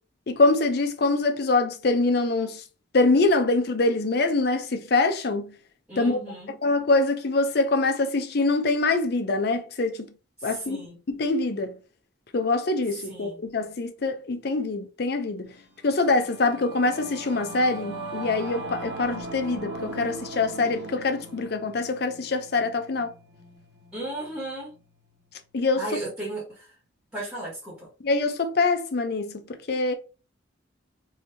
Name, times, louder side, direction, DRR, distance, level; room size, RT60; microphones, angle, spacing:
voice 1, 0.3-2.6 2.9-5.5 6.0-6.2 6.6-10.1 10.4-11.7 12.3-15.5 15.8-23.1 25.5-25.8 28.0-30.0, left 3 dB, 55° left, 0.5 m, -24 dB
voice 2, 5.9-6.6 10.4-11.0 13.1-13.4 23.9-24.7 25.8-26.7 27.1-27.9, right 1 dB, 5° right, 1.2 m, -35 dB
Singing / Musical instrument, 15.6-25.3, right 1 dB, 60° right, 1.1 m, -40 dB
2.9 x 2.7 x 3.3 m
head